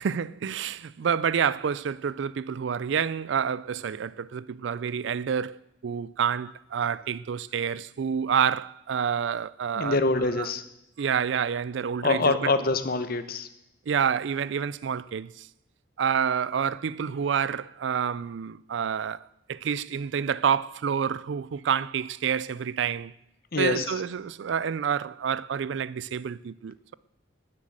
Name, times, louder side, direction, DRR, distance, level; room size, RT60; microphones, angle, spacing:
voice 1, 0.0-10.0 10.4-10.5 11.0-12.5 13.9-15.5 16.0-19.2 19.5-23.1 23.6-26.9, right 7 dB, 65° right, 0.4 m, -28 dB
voice 2, 9.8-10.6 12.0-13.5 23.5-24.0, left 3 dB, 50° left, 1.0 m, -25 dB
12.5 x 7.5 x 8.7 m
head